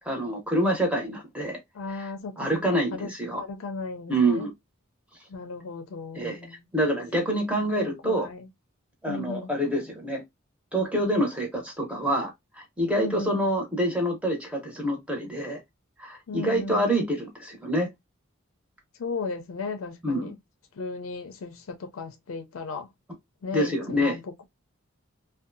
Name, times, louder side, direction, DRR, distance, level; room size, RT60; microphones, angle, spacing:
voice 1, 0.1-1.6 2.0-2.1 2.4-3.4 4.1-4.5 6.1-6.4 6.7-8.3 9.0-10.2 10.7-15.6 16.0-17.9 20.0-20.3 23.5-24.2, right 1 dB, 5° right, 0.8 m, -26 dB
voice 2, 1.7-4.5 5.3-6.7 7.8-8.5 9.1-9.5 13.0-13.4 16.3-16.9 19.0-20.4 20.7-22.9 23.4-24.4, left 4 dB, 75° left, 0.5 m, -36 dB
2.6 x 2.2 x 2.5 m
head